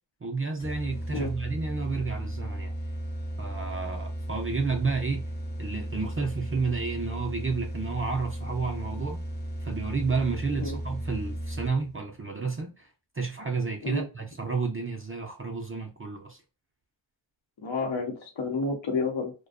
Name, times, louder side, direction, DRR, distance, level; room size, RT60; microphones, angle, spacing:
voice 1, 0.2-2.7 3.4-5.2 5.6-9.2 9.6-16.4, right 4 dB, 30° right, 0.4 m, -31 dB
sound 1, 0.6-12.0, right 1 dB, 20° left, 0.6 m, -35 dB
voice 2, 17.6-19.3, left 3 dB, 70° left, 0.8 m, -30 dB
2.5 x 2.2 x 2.3 m
wide cardioid pair, 65°, 46 cm